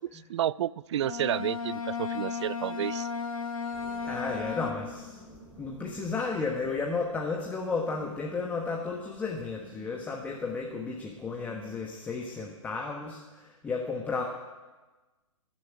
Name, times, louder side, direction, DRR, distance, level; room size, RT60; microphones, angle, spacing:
voice 1, 0.0-3.1, right 11 dB, 55° right, 22 dB, 0.4 m, -31 dB
Bowed string instrument, 0.9-5.2, left 6 dB, 90° left, 1.8 m, -35 dB
sound 1, 3.7-12.5, right 1 dB, 10° right, 3.5 m, -52 dB
voice 2, 4.0-5.2 5.6-14.2, left 4 dB, 10° left, 0 dB, 1.2 m, -33 dB
18.5 x 7.3 x 9.3 m, 1.2 s
hypercardioid pair, 150°, 17 cm